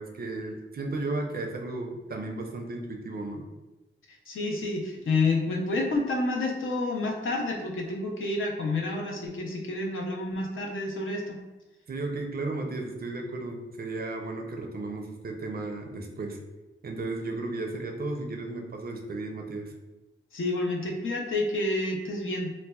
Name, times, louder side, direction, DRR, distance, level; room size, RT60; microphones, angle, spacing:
voice 1, 0.0-3.5 11.9-16.4 16.8-19.7, right 2 dB, 45° right, 2 dB, 0.4 m, -34 dB
voice 2, 4.3-11.4 20.3-22.5, left 2 dB, 75° left, 0 dB, 0.5 m, -29 dB
3.9 x 2.1 x 2.2 m, 1.1 s
wide cardioid pair, 145°, 21 cm